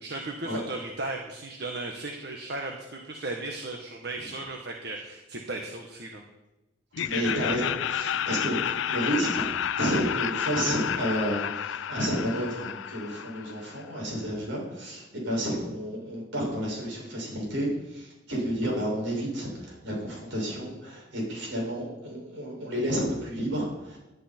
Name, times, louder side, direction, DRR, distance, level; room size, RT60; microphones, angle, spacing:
voice 1, 0.0-6.2, right 2 dB, 60° right, 2 dB, 1.4 m, -36 dB
Laughter, 6.9-13.9, left 9 dB, 75° left, 0.4 m, -31 dB
voice 2, 7.0-9.5 9.7-24.0, equal, 75° right, -2 dB, 6.4 m, -31 dB
18.5 x 11.0 x 4.5 m, 1.0 s
head